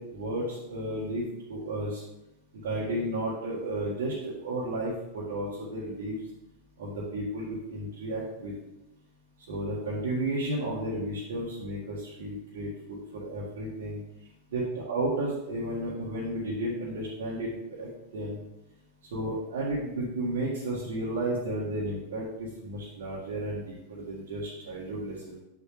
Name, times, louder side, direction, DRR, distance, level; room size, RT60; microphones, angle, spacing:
voice 1, 0.0-2.0 2.5-6.2 6.8-8.5 9.5-14.0 14.5-18.4 19.1-25.4, right 1 dB, 55° right, -6 dB, 1.7 m, -33 dB
8.3 x 6.7 x 3.2 m, 0.92 s
figure-of-eight pair, 90°, 0 cm